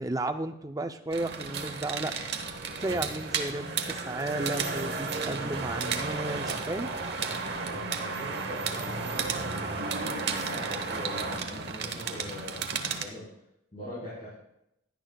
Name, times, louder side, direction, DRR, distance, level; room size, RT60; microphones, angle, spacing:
voice 1, 0.0-6.9, right 2 dB, 15° right, 7 dB, 0.5 m, -34 dB
sound 1, 1.1-13.0, right 4 dB, 55° right, 1.0 m, -33 dB
voice 2, 7.6-13.3 13.7-14.3, left 1 dB, 35° left, -10 dB, 4.9 m, -42 dB
16.5 x 11.0 x 2.3 m, 0.83 s
head